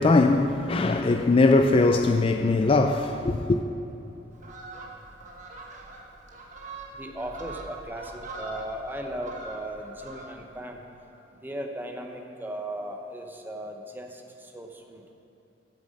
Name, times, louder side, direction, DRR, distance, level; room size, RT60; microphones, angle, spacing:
voice 1, 0.0-3.6, left 3 dB, 30° left, 0.3 m, -21 dB
Fowl, 4.3-10.6 11.0-11.2, right 2 dB, 40° right, 1.1 m, -43 dB
voice 2, 6.9-10.8 11.4-15.0, right 1 dB, 10° right, 0.8 m, -37 dB
9.1 x 7.3 x 6.4 m
head